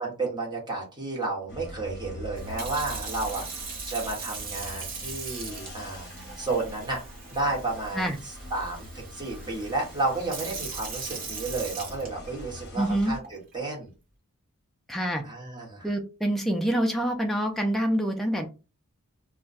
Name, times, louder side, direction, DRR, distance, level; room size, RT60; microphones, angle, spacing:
voice 1, 0.0-7.0 7.3-13.9 15.2-15.9, right 3 dB, 20° right, -2 dB, 1.1 m, -32 dB
sound 1, 1.5-13.2, equal, 45° left, 0.8 m, -43 dB
Sink (filling or washing) / Fill (with liquid), 2.3-12.6 13.2-13.5, right 4 dB, 40° right, 0.9 m, -40 dB
voice 2, 12.8-13.1 14.9-15.2 15.8-18.5, right 1 dB, ahead, 2 dB, 0.4 m, -26 dB
2.3 x 2.2 x 3.9 m, 0.30 s
head